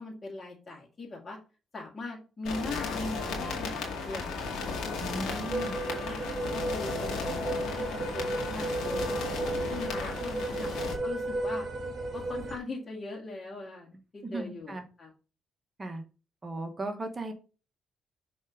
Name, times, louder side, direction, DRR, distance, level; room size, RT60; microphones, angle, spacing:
voice 1, 0.0-1.4 1.7-5.6 5.9-6.2 6.5-9.2 9.7-10.7 11.0-11.7 12.1-15.1, left 2 dB, 35° left, -2 dB, 2.1 m, -40 dB
sound 1, 2.4-10.9, left 4 dB, 85° left, 2.1 m, -35 dB
voice 2, 5.0-5.7 14.2-14.8 15.8-16.0 16.4-17.3, right 2 dB, 25° right, 5 dB, 1.3 m, -36 dB
sound 2, 5.5-12.6, right 2 dB, 50° right, 1.8 m, -34 dB
6.5 x 3.5 x 5.1 m, 0.34 s
cardioid pair, 90°, 0 cm